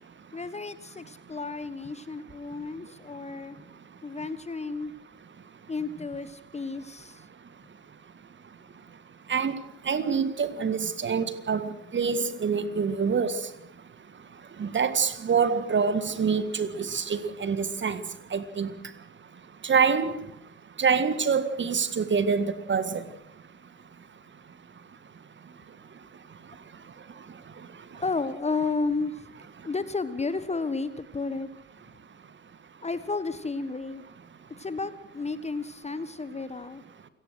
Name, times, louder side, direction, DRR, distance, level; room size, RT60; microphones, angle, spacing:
voice 1, 0.3-3.6 4.0-4.9 5.7-7.2 27.9-29.3 29.6-31.5 32.8-34.0 34.6-36.8, left 4 dB, 15° left, 13 dB, 1.3 m, -32 dB
voice 2, 9.9-13.5 14.6-18.0 18.3-18.7 19.6-20.2 20.8-23.0, right 6 dB, 30° right, 13 dB, 1.8 m, -26 dB
28.5 x 18.5 x 6.4 m, 0.78 s
figure-of-eight pair, 55°, 38 cm